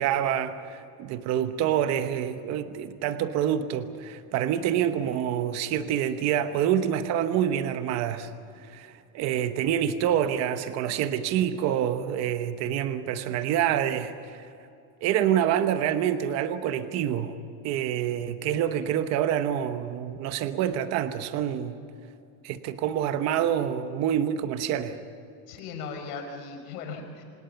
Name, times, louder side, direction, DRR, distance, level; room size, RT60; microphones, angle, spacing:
voice 1, 0.0-8.3 8.7-14.5 15.0-17.4 17.6-21.8 22.4-25.0, right 10 dB, 35° right, 10 dB, 1.0 m, -27 dB
voice 2, 25.5-27.2, left 5 dB, 70° left, 4 dB, 6.2 m, -37 dB
26.5 x 19.0 x 7.0 m, 2.6 s
supercardioid pair, 170°, 47 cm